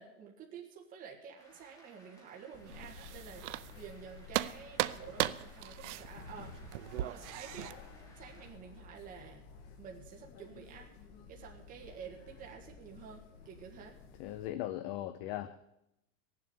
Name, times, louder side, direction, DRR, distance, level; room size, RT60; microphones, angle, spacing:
voice 1, 0.0-9.4 9.8-10.9 11.3-13.9, right 7 dB, 20° right, 0 dB, 1.6 m, -50 dB
Cheering / Applause, 1.4-8.5, equal, 10° left, 2.7 m, -61 dB
sound 1, 2.5-14.5, left 5 dB, 55° left, 2.4 m, -53 dB
sound 2, 2.7-4.0 4.3-7.7, right 15 dB, 65° right, 0.7 m, -37 dB
voice 2, 14.2-15.6, left 13 dB, 35° left, 13 dB, 0.5 m, -38 dB
17.0 x 7.6 x 8.6 m, 0.87 s
supercardioid pair, 165°, 39 cm